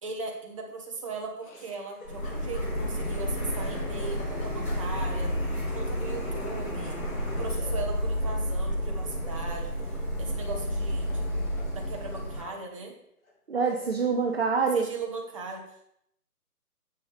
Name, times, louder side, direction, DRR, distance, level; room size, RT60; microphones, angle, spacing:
voice 1, 0.0-5.3 5.7-7.0 7.4-9.7 10.2-11.3 11.7-12.9 14.7-15.9, right 3 dB, 20° right, 0 dB, 1.1 m, -38 dB
Laughter, 1.4-3.2 3.5-5.2 7.5-10.7 11.0-12.6 13.2-13.3 13.6-15.0, left 2 dB, 55° left, 3.4 m, -49 dB
Printer, 2.0-12.4, equal, 20° left, 4.0 m, -31 dB
voice 2, 13.5-14.9, right 5 dB, 40° right, 2 dB, 0.7 m, -25 dB
10.0 x 7.2 x 3.4 m, 0.73 s
hypercardioid pair, 160°, 48 cm